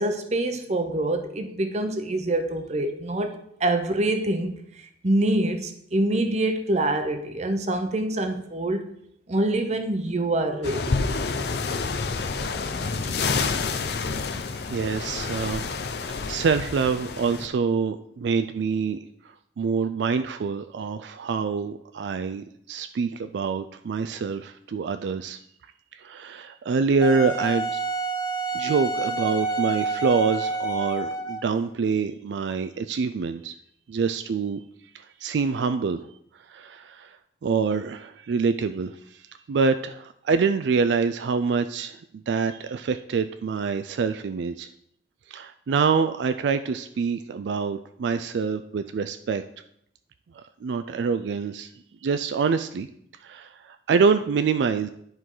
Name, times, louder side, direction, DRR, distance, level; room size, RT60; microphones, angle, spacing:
voice 1, 0.0-4.5 5.0-8.8 9.3-11.0, right 1 dB, 40° right, 7 dB, 0.8 m, -25 dB
sound 1, 10.6-17.5, left 4 dB, 60° left, 0.6 m, -28 dB
voice 2, 13.1-13.6 14.5-15.7 16.2-19.0 19.6-25.4 25.9-27.8 28.5-33.5 33.9-34.6 34.9-36.1 36.5-37.2 37.4-44.7 45.3-49.4 50.3-51.7 52.0-52.9 53.2-54.9, right 5 dB, 75° right, 10 dB, 0.3 m, -26 dB
Wind instrument woodwind instrument, 27.0-31.5, right 3 dB, 20° left, 0.7 m, -28 dB
10.5 x 4.7 x 3.8 m, 0.71 s
head